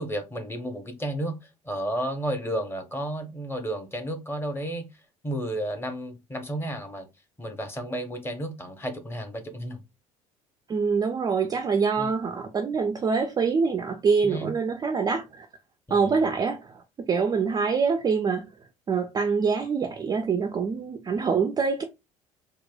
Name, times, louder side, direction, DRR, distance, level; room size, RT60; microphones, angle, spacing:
voice 1, 0.0-4.9 5.2-7.1 7.4-9.8 12.0-12.1 14.2-14.5 15.9-16.2, right 1 dB, 15° left, 0.8 m, -32 dB
voice 2, 10.7-15.5 15.9-16.8 17.1-18.4 18.9-21.8, right 5 dB, 25° right, 0.3 m, -25 dB
3.0 x 2.1 x 2.2 m
figure-of-eight pair, 60°, 17 cm